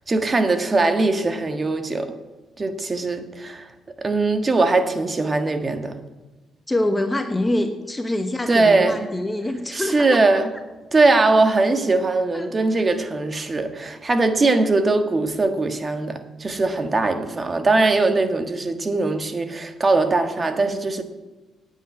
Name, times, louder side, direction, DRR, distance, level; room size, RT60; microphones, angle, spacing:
voice 1, 0.1-2.1 2.6-3.7 4.0-5.9 8.5-9.1 9.7-10.5 10.9-21.0, right 3 dB, 30° right, 1.5 m, -20 dB
voice 2, 6.7-10.5 12.3-12.9, left 1 dB, 15° left, 1.1 m, -25 dB
9.2 x 9.0 x 8.9 m
cardioid pair, 90°, 0 cm